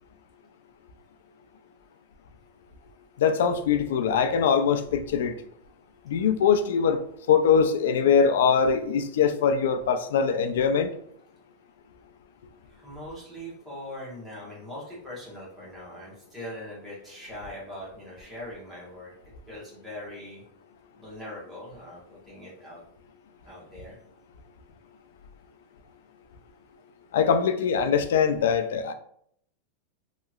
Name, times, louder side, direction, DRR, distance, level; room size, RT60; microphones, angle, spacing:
voice 1, 3.2-5.3 6.1-7.0 7.3-10.9 27.1-28.9, left 6 dB, 85° left, 8 dB, 0.3 m, -22 dB
voice 2, 12.6-19.1 19.5-20.4 21.0-22.8 23.4-23.9, left 1 dB, 5° right, -6 dB, 1.1 m, -41 dB
2.9 x 2.8 x 2.4 m, 0.68 s
supercardioid pair, 170°, 0 cm